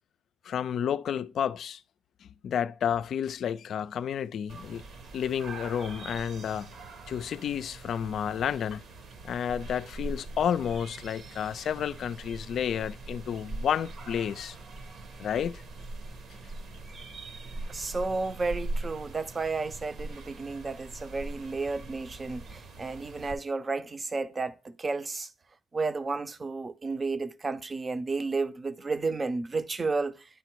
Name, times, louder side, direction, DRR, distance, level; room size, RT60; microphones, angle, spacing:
voice 1, 0.4-1.8 2.2-4.8 5.1-6.7 7.1-8.8 9.2-14.6 15.2-15.6, left 8 dB, 65° left, 0.4 m, -31 dB
sound 1, 4.5-23.3, right 2 dB, 65° right, 1.1 m, -42 dB
voice 2, 17.7-25.3 25.7-30.2, right 3 dB, 30° right, 0.6 m, -32 dB
10.0 x 4.0 x 4.6 m
cardioid pair, 90°, 0 cm